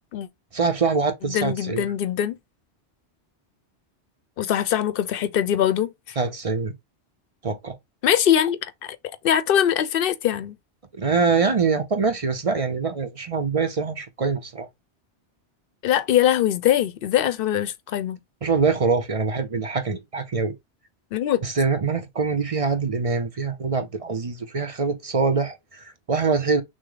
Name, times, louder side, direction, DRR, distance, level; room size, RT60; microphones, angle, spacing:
voice 1, 0.5-1.9 6.2-6.7 7.4-7.8 10.9-14.7 18.4-20.6 21.4-26.6, right 4 dB, 40° right, 0.6 m, -24 dB
voice 2, 1.2-2.4 4.4-6.2 8.0-9.0 9.2-10.6 15.8-18.2 21.1-21.4, left 10 dB, 60° left, 0.7 m, -22 dB
6.2 x 2.1 x 3.8 m
omnidirectional pair, 1.1 m